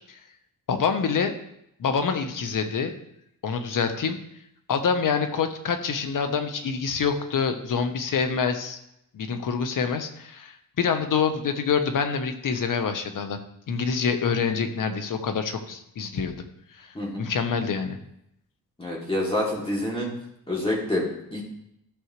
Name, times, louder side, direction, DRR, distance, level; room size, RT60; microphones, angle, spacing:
voice 1, 0.7-1.3 1.8-2.9 3.4-4.2 4.7-8.8 9.1-13.4 13.7-16.3 16.8-18.0, left 6 dB, 65° left, 7 dB, 1.1 m, -26 dB
voice 2, 16.9-17.2 18.8-20.1 20.5-21.4, left 1 dB, 15° left, -5 dB, 2.8 m, -27 dB
13.5 x 6.3 x 3.2 m, 0.77 s
cardioid pair, 120°, 35 cm